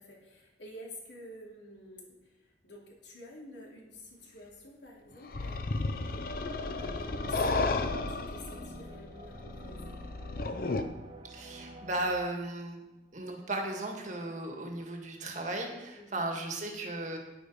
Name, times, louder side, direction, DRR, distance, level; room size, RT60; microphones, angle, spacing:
voice 1, 0.0-6.4 6.8-9.9 15.9-16.2, left 1 dB, 75° left, -2 dB, 2.8 m, -50 dB
sound 1, 5.3-10.8, left 3 dB, 50° left, 0.7 m, -33 dB
sound 2, 6.7-12.1, right 1 dB, 25° right, 0.8 m, -49 dB
voice 2, 11.2-12.8 13.1-17.2, right 2 dB, 40° right, 2 dB, 1.8 m, -36 dB
10.0 x 8.8 x 4.8 m, 1.0 s
head